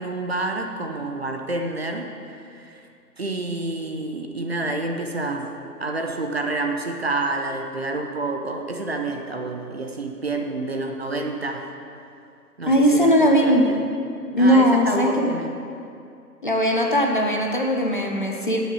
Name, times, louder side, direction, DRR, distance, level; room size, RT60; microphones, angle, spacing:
voice 1, 0.0-2.1 2.5-2.8 3.2-5.5 5.8-11.7 12.6-13.8 14.4-15.5, right 2 dB, 40° right, 3 dB, 0.8 m, -28 dB
voice 2, 12.7-13.6 14.3-15.3 16.4-18.6, equal, 30° left, 1 dB, 0.7 m, -19 dB
10.0 x 7.3 x 7.1 m, 2.5 s
figure-of-eight pair, 165°, 49 cm